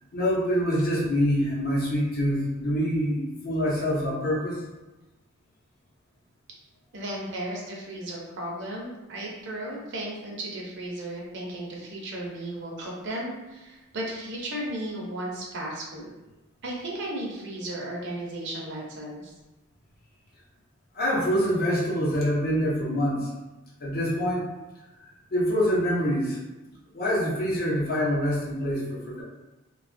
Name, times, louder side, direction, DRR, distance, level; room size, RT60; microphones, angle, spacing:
voice 1, 0.1-4.6 20.9-23.3 23.8-24.5 25.3-26.4 26.9-29.2, equal, 45° left, -4 dB, 0.7 m, -25 dB
voice 2, 6.9-16.1 16.6-19.3, right 1 dB, 60° right, -2 dB, 0.7 m, -35 dB
2.8 x 2.3 x 2.6 m, 1.1 s
head